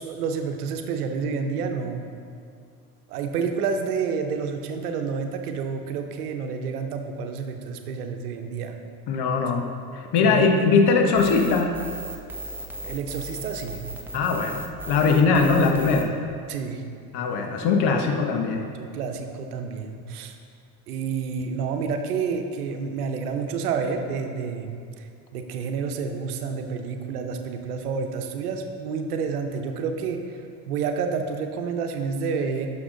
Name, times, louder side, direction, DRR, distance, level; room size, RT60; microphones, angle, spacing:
voice 1, 0.0-2.0 3.1-8.8 10.2-11.1 12.8-13.8 16.5-16.8 18.7-20.3 20.9-30.4 30.7-32.7, right 5 dB, 85° right, 5 dB, 0.9 m, -29 dB
voice 2, 9.1-9.6 9.9-11.8 14.1-16.1 17.1-18.7, left 4 dB, 60° left, 4 dB, 1.3 m, -21 dB
sound 1, 11.2-16.0, equal, 5° right, 1.2 m, -36 dB
11.0 x 6.0 x 3.9 m, 2.3 s
hypercardioid pair, 70°, 44 cm